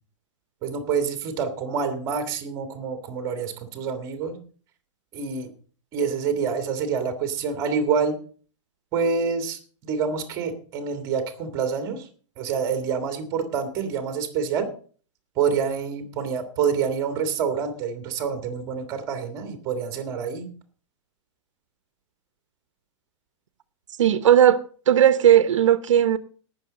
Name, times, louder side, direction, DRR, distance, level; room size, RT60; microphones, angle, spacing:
voice 1, 0.6-4.4 5.1-5.5 5.9-8.1 8.9-12.1 12.4-14.7 15.4-20.5, right 6 dB, 20° right, 1.9 m, -27 dB
voice 2, 24.0-26.2, right 10 dB, 80° right, 1.0 m, -17 dB
18.5 x 6.6 x 5.1 m
supercardioid pair, 175°, 16 cm